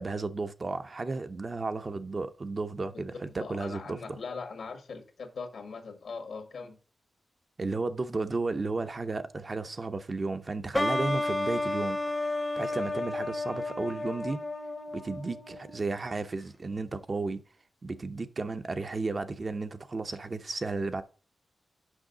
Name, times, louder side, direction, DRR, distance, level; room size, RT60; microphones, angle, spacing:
voice 1, 0.0-4.2 7.6-14.4 14.9-17.4 17.8-21.0, right 3 dB, 35° right, 0.6 m, -33 dB
voice 2, 3.4-6.8, left 4 dB, 75° left, 1.6 m, -40 dB
sound 1, 10.7-16.2, left 2 dB, 15° left, 0.7 m, -32 dB
6.3 x 5.7 x 3.9 m
wide cardioid pair, 115°, 0 cm